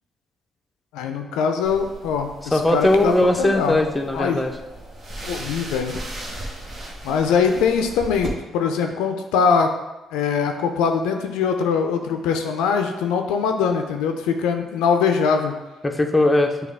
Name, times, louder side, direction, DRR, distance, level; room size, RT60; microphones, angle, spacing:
voice 1, 0.9-3.8 4.1-4.4 5.3-6.0 7.0-9.7 10.1-15.6, left 6 dB, 85° left, 5 dB, 0.4 m, -22 dB
sound 1, 1.6-8.3, right 1 dB, 50° right, 1.0 m, -37 dB
voice 2, 2.5-4.5 15.8-16.5, left 1 dB, 15° left, 4 dB, 0.5 m, -19 dB
6.3 x 2.3 x 3.4 m, 1.0 s
supercardioid pair, 60°, 0 cm